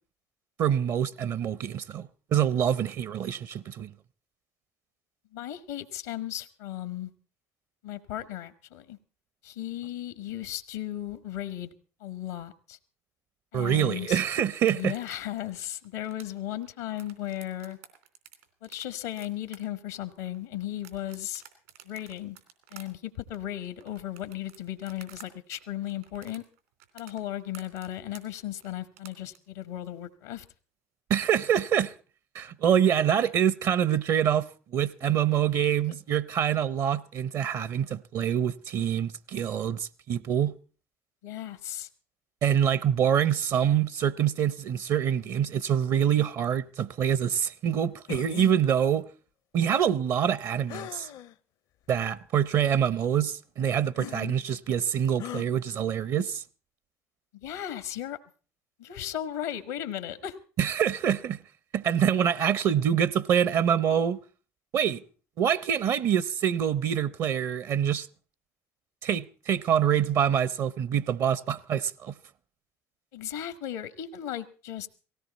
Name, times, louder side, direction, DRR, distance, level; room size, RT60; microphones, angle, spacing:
voice 1, 0.6-3.9 13.5-14.9 31.1-31.9 32.3-34.5 34.7-40.5 42.4-49.1 49.5-51.1 51.9-56.4 60.6-61.4 61.7-64.2 64.7-65.0 65.4-68.1 69.0-72.1, right 9 dB, 55° right, 0.7 m, -25 dB
voice 2, 5.3-7.1 7.8-9.0 9.4-11.7 12.0-12.8 13.5-14.2 14.7-17.8 18.6-21.4 21.8-22.4 22.7-26.4 26.9-30.4 35.9-36.0 41.2-41.9 54.0-54.3 57.4-58.2 58.8-60.4 73.1-74.9, left 12 dB, 85° left, 1.2 m, -36 dB
sound 1, 14.6-25.3 25.5-29.4, right 11 dB, 85° right, 3.2 m, -52 dB
sound 2, 48.1-48.5 50.7-51.3 52.0-52.1 53.9-54.2 55.2-55.5, left 11 dB, 60° left, 0.7 m, -39 dB
18.0 x 16.5 x 4.2 m
hypercardioid pair, 65°, 7 cm